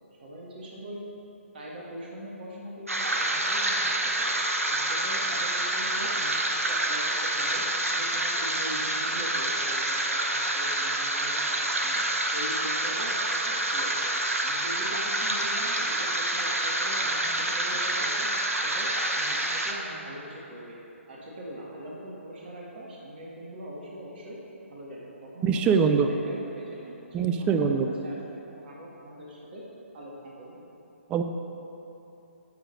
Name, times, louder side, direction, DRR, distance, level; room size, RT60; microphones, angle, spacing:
voice 1, 0.2-1.0 1.5-7.6 7.9-12.0 12.3-14.1 14.4-18.3 18.6-18.9 19.2-20.8 21.1-24.4 24.7-28.3 28.6-29.6 29.9-30.1 30.4-30.6, equal, 45° right, -4 dB, 1.8 m, -42 dB
sound 1, 2.9-19.7, right 1 dB, 85° right, 1.0 m, -27 dB
voice 2, 25.4-26.1 27.1-27.9 31.1-31.2, right 6 dB, 15° right, 7 dB, 0.4 m, -23 dB
11.5 x 3.9 x 6.4 m, 3.0 s
figure-of-eight pair, 135°, 8 cm